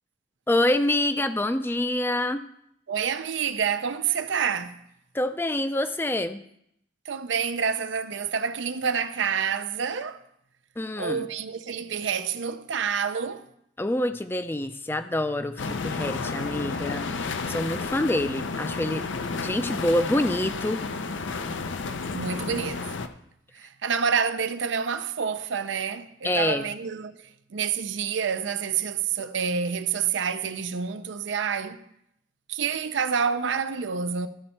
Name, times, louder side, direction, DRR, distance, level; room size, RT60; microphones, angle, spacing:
voice 1, 0.5-2.4 5.1-6.4 10.8-11.3 13.8-19.0 19.4-20.8 26.2-26.7, left 1 dB, 10° left, 0.4 m, -26 dB
voice 2, 2.9-4.8 7.1-10.2 11.0-13.5 22.1-22.9 23.6-27.1 27.5-31.8 32.5-34.3, right 6 dB, 80° right, 0.5 m, -28 dB
sound 1, 15.6-23.1, left 4 dB, 85° left, 0.6 m, -32 dB
13.5 x 5.4 x 4.3 m
head